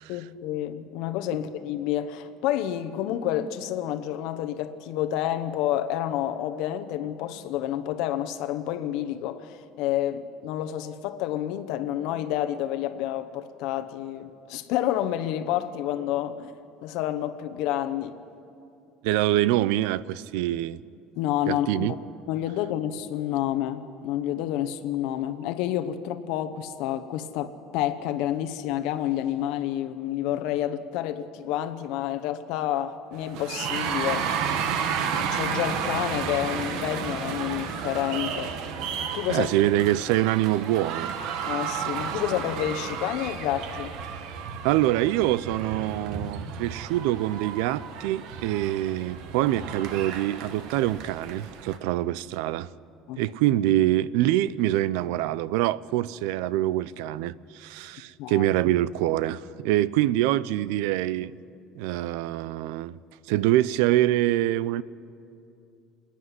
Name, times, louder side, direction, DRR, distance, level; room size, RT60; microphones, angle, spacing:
voice 1, 0.1-16.5 16.8-18.1 21.1-22.0 22.3-34.3 35.2-38.5 39.0-39.5 41.5-43.9 53.1-53.2 58.2-58.5, left 12 dB, 60° left, 1.0 m, -29 dB
voice 2, 19.0-20.8 21.5-21.9 39.3-41.1 44.6-52.7 53.2-61.3 61.8-63.0 63.3-64.8, right 14 dB, 80° right, 0.5 m, -25 dB
sound 1, 33.1-51.8, right 7 dB, 55° right, 1.3 m, -32 dB
27.5 x 10.0 x 9.6 m
cardioid pair, 180°, 0 cm